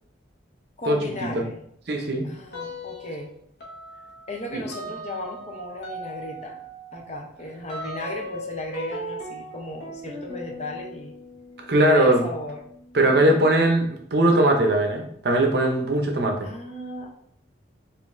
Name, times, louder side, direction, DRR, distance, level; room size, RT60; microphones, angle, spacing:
voice 1, 0.8-1.6 2.2-3.3 4.3-6.6 6.9-11.1 11.8-12.6 13.0-13.4 16.4-17.1, left 1 dB, 35° left, 1 dB, 0.6 m, -36 dB
voice 2, 1.9-2.2 4.5-4.6 11.7-12.2 12.9-13.8 14.1-16.4, right 1 dB, 55° right, 3 dB, 0.6 m, -19 dB
sound 1, 2.5-3.3 3.6-13.9, equal, 60° left, 0.9 m, -39 dB
5.0 x 2.5 x 2.5 m, 0.68 s
head